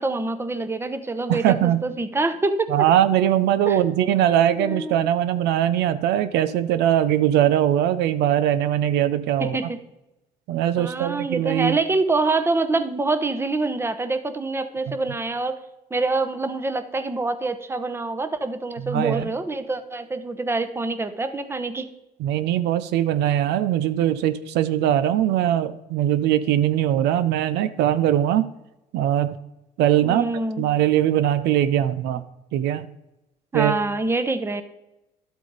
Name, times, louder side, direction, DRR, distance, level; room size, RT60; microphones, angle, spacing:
voice 1, 0.0-2.7 3.7-3.8 4.6-5.1 9.4-9.8 10.8-15.6 15.9-21.9 30.0-30.6 33.5-34.6, right 3 dB, 15° right, 11 dB, 0.9 m, -25 dB
voice 2, 1.3-1.8 2.7-9.6 10.5-11.8 14.9-15.0 18.8-19.3 22.2-28.5 28.9-29.3 29.8-30.3 30.6-32.2 32.5-32.9 33.5-33.7, right 11 dB, 80° right, 13 dB, 0.6 m, -21 dB
11.5 x 8.1 x 4.0 m, 0.93 s
cardioid pair, 110°, 17 cm